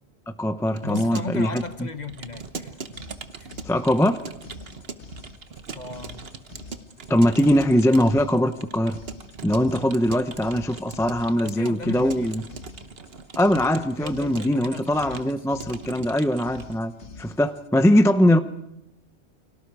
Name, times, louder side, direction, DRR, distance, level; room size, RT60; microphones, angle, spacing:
voice 1, 0.3-1.6 3.6-4.2 7.1-9.0 9.4-12.4 13.4-16.9 17.2-18.4, equal, 5° left, 0.6 m, -21 dB
Keyboard (musical) / Computer keyboard, 0.7-16.8, right 5 dB, 60° right, 1.3 m, -41 dB
voice 2, 0.8-3.1 3.4-3.5 5.7-6.3 11.4-12.5 14.0-15.7, left 4 dB, 40° left, 1.3 m, -36 dB
sound 1, 2.3-17.7, left 4 dB, 90° left, 1.7 m, -47 dB
30.0 x 24.0 x 4.8 m
omnidirectional pair, 1.1 m